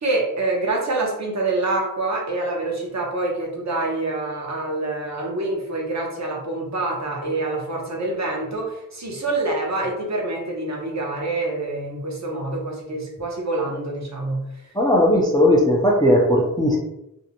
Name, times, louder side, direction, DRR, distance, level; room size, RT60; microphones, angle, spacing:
voice 1, 0.0-14.5, right 2 dB, 50° right, -1 dB, 0.7 m, -26 dB
voice 2, 14.8-16.8, left 1 dB, 10° left, -3 dB, 0.4 m, -17 dB
2.5 x 2.1 x 2.8 m, 0.86 s
wide cardioid pair, 90°, 36 cm